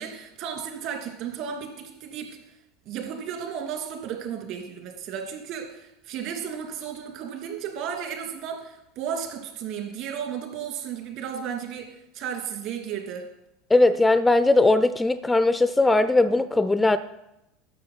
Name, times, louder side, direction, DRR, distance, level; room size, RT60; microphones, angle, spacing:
voice 1, 0.0-2.4 2.8-11.9 12.1-13.2, right 8 dB, 55° right, 3 dB, 2.7 m, -34 dB
voice 2, 13.7-17.0, left 2 dB, 10° left, 14 dB, 0.5 m, -19 dB
12.5 x 6.4 x 5.7 m, 0.87 s
figure-of-eight pair, 75°, 0 cm